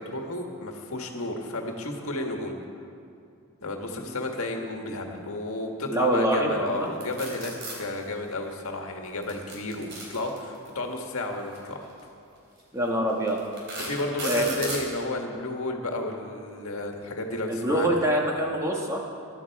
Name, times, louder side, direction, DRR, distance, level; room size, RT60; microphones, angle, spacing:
voice 1, 0.0-2.5 3.6-11.8 13.8-18.1, left 2 dB, 75° left, 2 dB, 1.7 m, -32 dB
voice 2, 5.9-6.9 12.7-13.4 14.3-14.5 17.5-19.0, right 1 dB, 15° right, -1 dB, 1.5 m, -25 dB
sound 1, 7.0-7.8 9.2-10.7 11.8-12.0 12.6-12.7 13.3-14.9, right 2 dB, 55° right, 3.8 m, -35 dB
20.5 x 12.0 x 4.7 m, 2.5 s
head